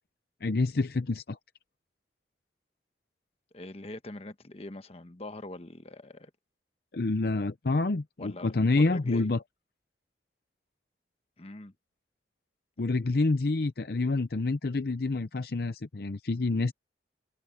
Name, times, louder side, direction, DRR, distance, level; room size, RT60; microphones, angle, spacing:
voice 1, 0.4-1.4 6.9-9.4 12.8-16.7, left 3 dB, 55° left, 0.6 m, -27 dB
voice 2, 3.5-6.3 8.2-9.3 11.4-11.7, left 2 dB, 35° left, 1.1 m, -43 dB
head